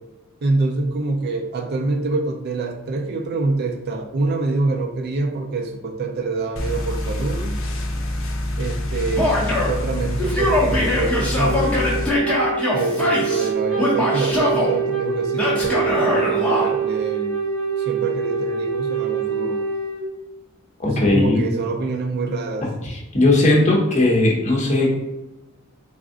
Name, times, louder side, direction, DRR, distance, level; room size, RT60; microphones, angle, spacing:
voice 1, 0.4-7.6 8.6-11.8 12.7-17.4 17.8-19.6 20.9-22.7, right 3 dB, 50° right, 3 dB, 0.4 m, -26 dB
sound 1, 6.6-12.1, left 1 dB, 70° left, 0.6 m, -26 dB
Male speech man speaking / Yell, 9.2-9.8 10.2-13.5 13.8-14.7 15.4-16.7, left 1 dB, 5° left, 1.0 m, -21 dB
Wind instrument woodwind instrument, 11.4-20.1, right 6 dB, 85° right, 0.8 m, -25 dB
voice 2, 20.8-21.4 22.8-24.9, left 2 dB, 35° left, -2 dB, 1.0 m, -18 dB
3.5 x 2.4 x 3.7 m, 0.96 s
head